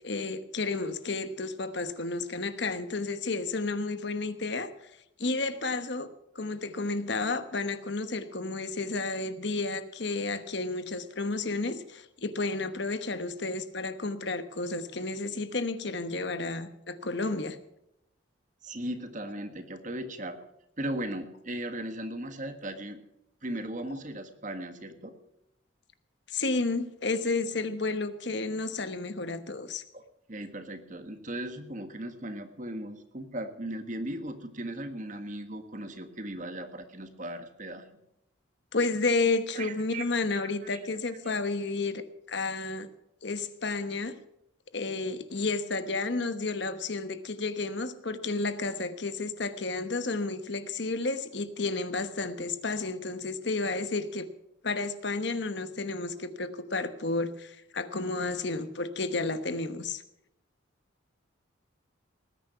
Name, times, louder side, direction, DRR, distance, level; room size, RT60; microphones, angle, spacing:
voice 1, 0.0-4.7 5.2-6.1 6.3-17.6 26.3-29.8 38.7-42.0 42.3-42.9 43.2-44.1 44.7-54.3 54.6-60.0, left 3 dB, 60° left, 11 dB, 1.1 m, -31 dB
voice 2, 18.6-20.4 20.8-23.0 23.4-25.1 29.9-30.0 30.3-38.0 39.5-40.8 41.2-41.4, right 1 dB, 40° right, 8 dB, 1.6 m, -37 dB
19.5 x 10.0 x 5.7 m, 0.82 s
head